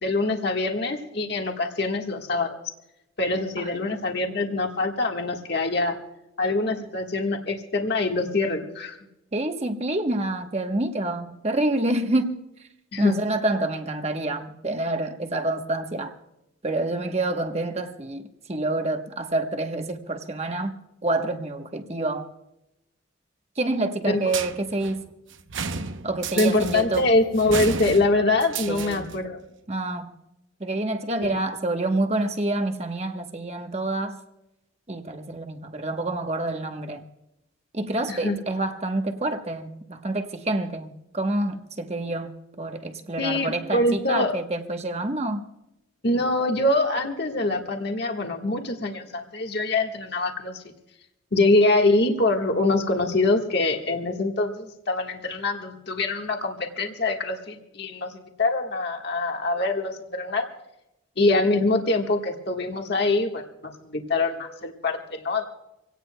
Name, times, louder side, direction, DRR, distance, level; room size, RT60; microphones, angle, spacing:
voice 1, 0.0-2.6 3.2-6.0 6.4-9.0 12.9-13.2 24.1-24.2 26.4-29.4 31.2-31.3 38.1-38.4 43.2-44.3 46.0-50.6 51.3-60.4 61.2-65.4, left 2 dB, 50° left, 1.5 m, -24 dB
voice 2, 9.3-12.4 13.0-16.1 16.6-22.3 23.6-25.1 26.0-27.1 28.7-29.1 29.7-30.1 30.6-34.2 34.9-37.0 37.7-42.3 42.6-45.4, right 2 dB, 30° right, 1.1 m, -27 dB
sound 1, 24.3-29.3, right 5 dB, 65° right, 0.8 m, -33 dB
26.0 x 17.5 x 2.2 m
head